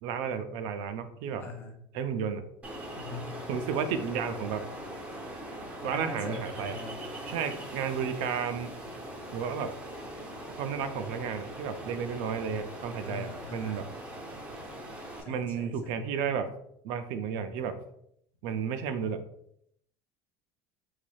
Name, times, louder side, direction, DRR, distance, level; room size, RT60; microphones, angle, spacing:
voice 1, 0.0-1.5 1.9-2.4 3.5-4.6 5.8-6.8 7.3-8.7 9.3-9.7 10.6-13.9 15.3-16.5 16.8-17.8 18.4-19.2, right 7 dB, 65° right, 9 dB, 0.4 m, -32 dB
voice 2, 1.4-1.8 3.0-3.3 5.8-7.0 13.0-13.8 15.2-16.0, left 4 dB, 25° left, 3 dB, 0.5 m, -42 dB
Ocean, 2.6-15.2, right 1 dB, 15° right, 0.6 m, -41 dB
3.9 x 3.2 x 2.3 m, 0.72 s
cardioid pair, 175°, 8 cm